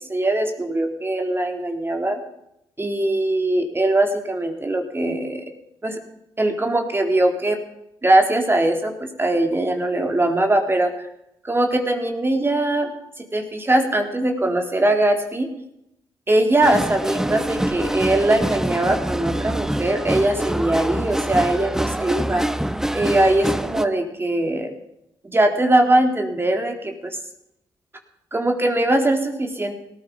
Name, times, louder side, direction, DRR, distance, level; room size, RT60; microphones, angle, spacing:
voice 1, 0.1-2.2 2.8-5.5 5.8-6.0 6.4-7.6 8.0-11.1 11.4-12.9 13.3-15.5 16.3-22.4 22.9-24.7 25.2-27.2 28.3-29.8, right 1 dB, 25° right, 3 dB, 3.6 m, -21 dB
sound 1, 16.6-23.8, right 1 dB, 5° right, 1.0 m, -25 dB
18.0 x 13.5 x 5.3 m, 0.79 s
supercardioid pair, 55°, 10 cm